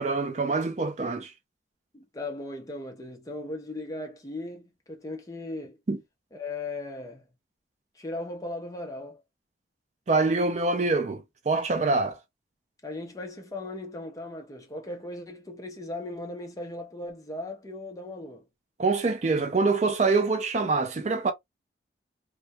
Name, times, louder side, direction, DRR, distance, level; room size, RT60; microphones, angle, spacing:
voice 1, 0.0-1.3 5.9-6.0 10.1-12.2 18.8-21.3, right 3 dB, 40° right, 0.4 m, -25 dB
voice 2, 1.9-5.8 6.3-7.2 8.0-9.2 12.8-18.4, left 2 dB, 20° left, 0.6 m, -37 dB
2.2 x 2.2 x 2.6 m
head